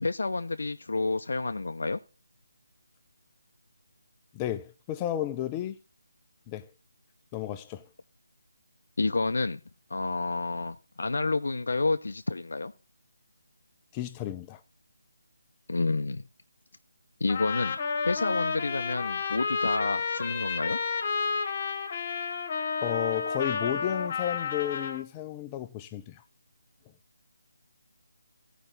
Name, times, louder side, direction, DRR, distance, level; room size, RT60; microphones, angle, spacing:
voice 1, 0.0-2.0 9.0-9.6 9.9-12.7 15.7-16.2 17.2-20.8, left 3 dB, 70° left, 0.5 m, -29 dB
voice 2, 4.3-5.8 6.5-6.7 7.3-7.9 13.9-14.6 22.8-26.2, left 12 dB, 20° left, 0.5 m, -33 dB
Trumpet, 17.3-25.0, left 5 dB, 35° left, 1.3 m, -31 dB
15.0 x 5.1 x 4.0 m
figure-of-eight pair, 155°, 0 cm